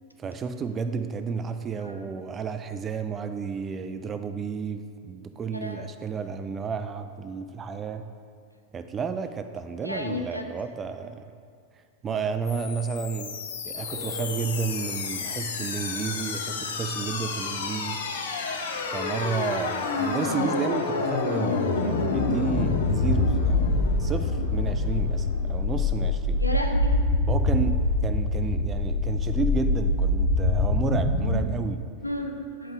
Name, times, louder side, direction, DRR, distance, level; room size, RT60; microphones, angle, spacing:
voice 1, 0.2-8.1 8.7-11.3 12.0-13.4 13.7-18.0 18.9-23.7 24.0-26.4 27.3-31.8, right 5 dB, 20° right, 9 dB, 0.3 m, -31 dB
voice 2, 5.5-5.8 9.8-10.5 12.1-12.3 26.4-27.0 32.0-32.7, left 1 dB, 90° right, 4 dB, 0.5 m, -32 dB
sound 1, 12.5-31.4, left 3 dB, 65° left, 0.6 m, -26 dB
sound 2, 13.7-20.4, left 3 dB, 35° left, 0.9 m, -46 dB
7.8 x 5.3 x 3.6 m, 2.2 s
figure-of-eight pair, 90°, 0 cm